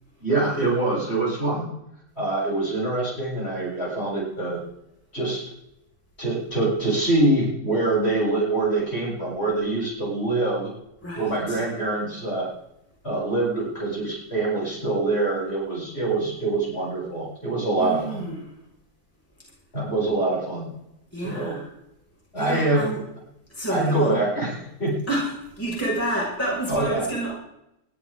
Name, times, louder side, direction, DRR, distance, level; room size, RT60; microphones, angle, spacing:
voice 1, 0.2-1.7 2.2-4.6 5.1-5.4 6.2-10.7 11.2-12.5 13.0-18.3 19.7-20.7 21.2-21.6 22.3-22.8 23.7-25.0 26.7-27.0, right 2 dB, 40° left, -5 dB, 8.2 m, -24 dB
voice 2, 11.0-11.6 17.8-18.3 21.1-21.6 22.4-23.0 23.6-24.2 25.1-25.3 25.6-27.3, right 1 dB, 10° left, -5 dB, 6.2 m, -28 dB
21.5 x 14.0 x 4.0 m, 0.83 s
omnidirectional pair, 1.7 m